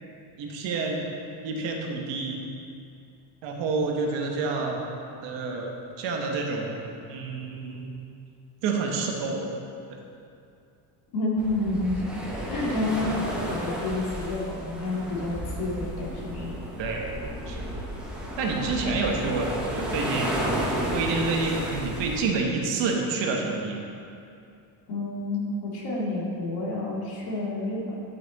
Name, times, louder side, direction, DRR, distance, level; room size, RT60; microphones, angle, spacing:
voice 1, 0.4-1.1 1.4-2.4 3.4-4.8 5.2-6.8 7.1-7.9 8.6-9.4 16.8-17.7 18.4-20.3 20.9-23.8, right 3 dB, 60° right, 1 dB, 1.3 m, -28 dB
voice 2, 11.1-12.0 12.3-16.5 18.6-19.1 24.9-28.0, left 2 dB, 50° left, -4 dB, 2.1 m, -29 dB
sound 1, 11.4-22.2, equal, ahead, 0.9 m, -32 dB
11.0 x 5.9 x 4.1 m, 2.5 s
cardioid pair, 165°, 49 cm